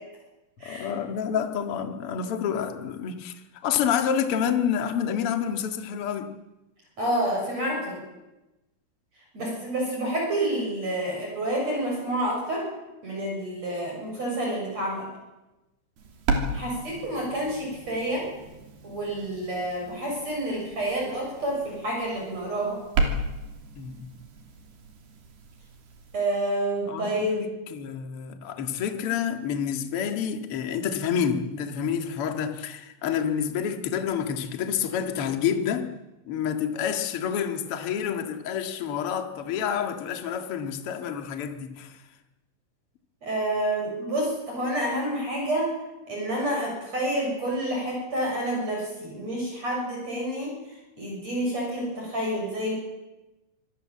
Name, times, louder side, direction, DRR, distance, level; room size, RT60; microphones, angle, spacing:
voice 1, 0.6-6.3 16.4-16.6 23.7-24.1 26.8-35.8 36.2-42.0, left 8 dB, 55° left, 6 dB, 1.6 m, -28 dB
voice 2, 7.0-8.0 9.3-12.7 13.0-15.1 16.5-18.3 18.8-22.8 26.1-27.4 43.2-45.7 46.1-52.7, right 1 dB, 30° right, -1 dB, 8.0 m, -29 dB
sound 1, 16.0-26.2, right 3 dB, 55° right, 4.7 m, -34 dB
25.5 x 21.0 x 7.7 m, 1.0 s
omnidirectional pair, 5.7 m